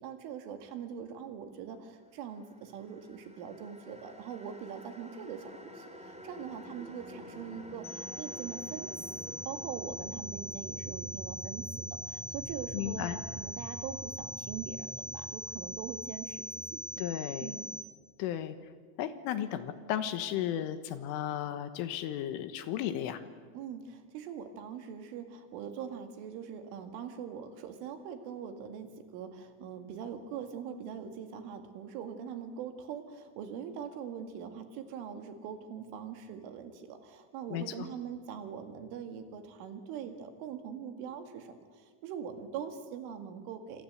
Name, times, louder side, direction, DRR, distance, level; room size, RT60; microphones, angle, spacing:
voice 1, 0.0-8.9 9.2-17.1 17.4-17.7 23.5-43.8, right 7 dB, 75° right, 7 dB, 4.4 m, -42 dB
sound 1, 2.6-17.8, right 1 dB, 5° right, 1.4 m, -48 dB
sound 2, 7.8-17.8, left 1 dB, 70° left, 1.1 m, -42 dB
voice 2, 12.7-13.2 17.0-17.6 18.2-18.6 19.0-23.2 37.5-37.6, left 11 dB, 85° left, 11 dB, 3.8 m, -34 dB
27.5 x 25.5 x 8.1 m, 1.5 s
omnidirectional pair, 5.7 m